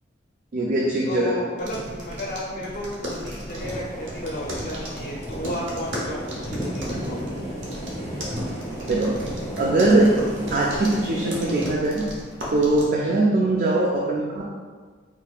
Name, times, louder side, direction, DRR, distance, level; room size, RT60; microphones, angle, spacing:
voice 1, 0.5-1.4 8.9-9.3 9.6-10.2 10.5-12.0 12.5-14.4, right 2 dB, 45° right, -2 dB, 0.3 m, -21 dB
voice 2, 1.1-6.2 6.5-7.3 13.0-13.2, left 1 dB, 45° left, -4 dB, 0.5 m, -32 dB
sound 1, 1.6-12.9, equal, 75° right, 0.8 m, -36 dB
sound 2, 3.5-11.7, equal, 15° right, 0.8 m, -34 dB
4.0 x 2.9 x 2.3 m, 1.5 s
head